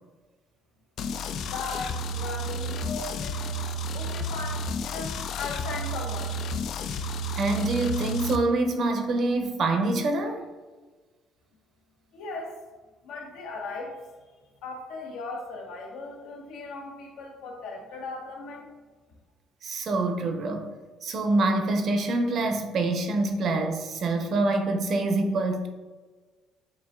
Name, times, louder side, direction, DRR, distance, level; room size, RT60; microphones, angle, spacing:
sound 1, 1.0-8.4, equal, 65° left, 0.3 m, -32 dB
voice 1, 1.4-3.6 3.9-6.7 12.1-12.6 13.0-14.0 14.6-18.7, left 3 dB, 80° left, 0 dB, 1.0 m, -38 dB
voice 2, 7.4-10.4 19.6-20.7 21.0-25.7, right 2 dB, 50° right, 4 dB, 0.6 m, -25 dB
7.0 x 2.7 x 2.3 m, 1.3 s
cardioid pair, 125°, 0 cm